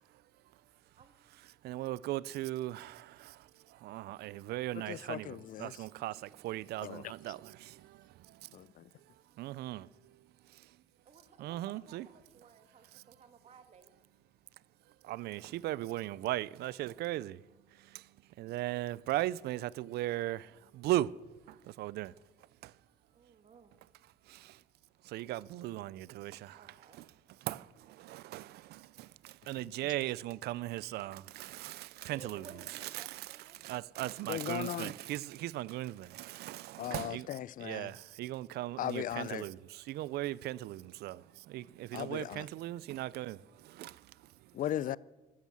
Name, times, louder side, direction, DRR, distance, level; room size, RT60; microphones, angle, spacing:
voice 1, 1.4-8.4 9.4-9.9 11.4-12.1 12.9-13.0 15.0-17.4 17.8-18.1 18.4-21.1 21.5-22.1 22.6-22.7 24.3-24.6 25.0-27.1 27.5-27.6 28.0-32.4 32.8-37.3 37.6-44.1, right 15 dB, 75° right, 0.5 m, -38 dB
voice 2, 4.9-5.8 6.8-7.1 8.5-8.8 29.6-29.7 34.3-34.9 36.8-37.9 38.8-39.4 41.9-42.5 44.5-45.0, left 12 dB, 55° left, 0.5 m, -37 dB
voice 3, 11.1-13.9 23.1-23.7 26.6-27.0 32.1-33.6, right 6 dB, 40° right, 2.0 m, -56 dB
13.5 x 11.0 x 7.4 m
cardioid pair, 110°, 17 cm